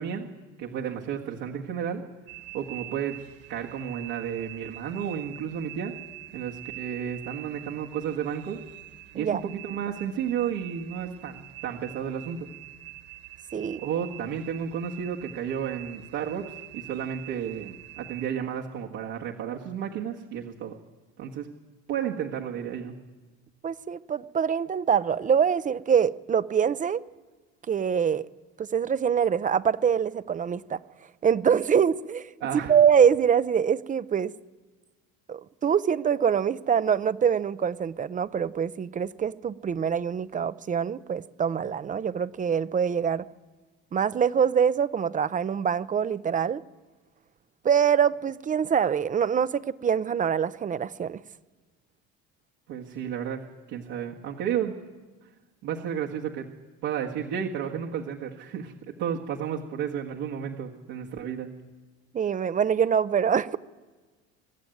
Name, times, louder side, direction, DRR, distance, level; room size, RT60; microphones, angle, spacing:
voice 1, 0.0-2.0 2.5-3.2 3.5-5.9 6.3-8.6 9.1-12.5 13.8-20.8 21.2-21.5 21.9-22.9 32.4-32.8 52.7-54.8 55.6-56.5 56.8-61.5, right 8 dB, 80° right, 1.7 m, -32 dB
sound 1, 2.3-18.3, right 17 dB, 50° right, 1.7 m, -45 dB
voice 2, 23.6-27.0 27.7-28.3 28.6-30.8 31.2-32.3 32.7-34.3 35.3-43.2 43.9-46.6 47.6-51.2 62.1-63.6, right 7 dB, 25° right, 0.5 m, -24 dB
24.0 x 12.0 x 9.2 m
cardioid pair, 115°, 30 cm